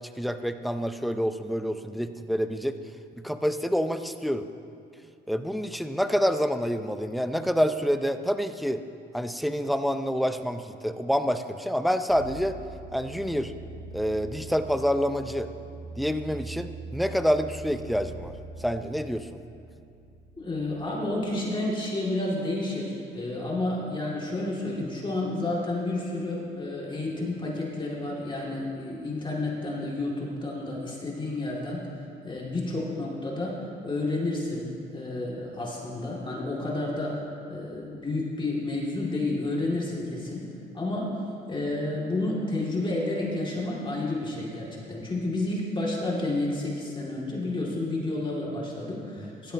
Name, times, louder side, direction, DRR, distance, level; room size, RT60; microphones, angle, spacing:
voice 1, 0.2-2.8 3.2-4.5 5.3-8.8 9.1-12.6 12.9-13.5 13.9-15.5 16.0-19.3, equal, ahead, 8 dB, 0.5 m, -27 dB
sound 1, 12.1-21.7, right 3 dB, 90° right, 3.2 m, -43 dB
voice 2, 20.4-31.9 32.2-37.2 37.5-40.5 40.7-41.1 41.5-49.5, left 2 dB, 25° left, -4 dB, 2.3 m, -30 dB
15.5 x 11.5 x 2.8 m, 2.5 s
cardioid pair, 90°, 20 cm